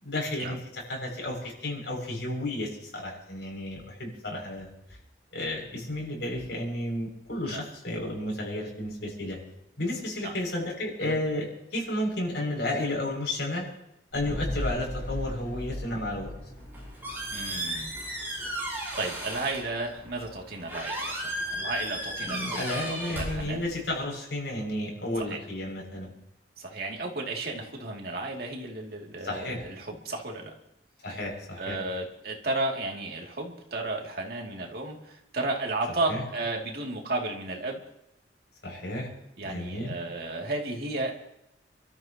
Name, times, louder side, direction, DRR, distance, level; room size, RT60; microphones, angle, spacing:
voice 1, 0.0-4.7 5.3-9.4 9.8-13.7 14.1-16.3 22.2-26.1 29.2-29.6 31.0-31.8 36.1-36.2 38.6-39.1 39.4-40.0, left 1 dB, 80° left, -1 dB, 6.7 m, -32 dB
sound 1, 14.1-18.6 19.0-19.1, left 1 dB, 15° left, 6.9 m, -37 dB
Squeak, 16.5-24.0, right 1 dB, 15° right, 7.5 m, -35 dB
voice 2, 17.3-18.6 18.9-22.6 22.9-23.6 25.2-25.4 26.6-30.5 31.6-37.8 39.4-41.1, right 2 dB, 60° right, 0 dB, 2.6 m, -33 dB
30.0 x 13.5 x 3.0 m, 0.83 s
head